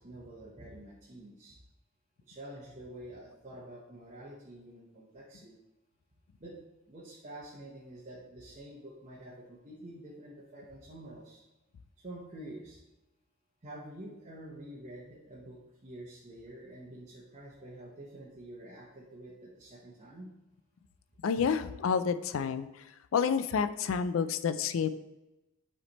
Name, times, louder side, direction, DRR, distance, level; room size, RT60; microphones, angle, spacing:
voice 1, 0.0-1.6 2.2-5.6 6.4-6.6 6.9-11.4 12.0-12.8 13.6-20.3, right 1 dB, 35° right, -6 dB, 0.9 m, -48 dB
voice 2, 21.2-22.7 23.1-24.9, left 6 dB, 75° left, 13 dB, 0.4 m, -29 dB
7.8 x 3.3 x 4.1 m, 0.97 s
head